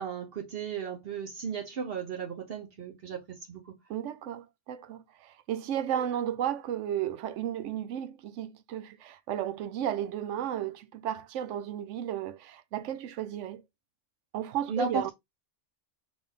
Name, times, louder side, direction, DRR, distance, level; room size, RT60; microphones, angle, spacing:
voice 1, 0.0-3.8 14.7-15.1, right 5 dB, 55° right, 0.9 m, -35 dB
voice 2, 3.9-13.6 14.3-15.1, right 10 dB, 85° right, 0.9 m, -34 dB
3.8 x 3.5 x 3.6 m
omnidirectional pair, 1.2 m